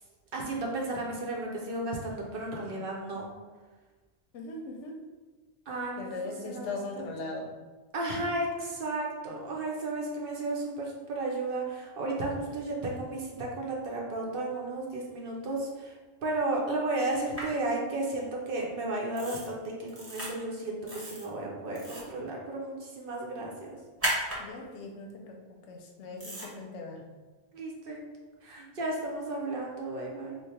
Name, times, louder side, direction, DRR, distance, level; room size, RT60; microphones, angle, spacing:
voice 1, 0.3-3.3 5.7-7.0 7.9-16.0 16.2-23.8 27.5-28.0 28.4-30.4, right 2 dB, 55° right, -1 dB, 0.7 m, -33 dB
voice 2, 4.3-4.9 6.0-7.5 24.4-27.0, left 3 dB, 90° left, 1 dB, 0.9 m, -39 dB
sound 1, 17.3-17.4 19.2-19.5 19.9-20.3 20.9-21.2 21.7-22.1 24.0-24.4 26.2-26.5, right 1 dB, 15° right, 0.8 m, -34 dB
3.2 x 2.1 x 4.1 m, 1.3 s
omnidirectional pair, 1.2 m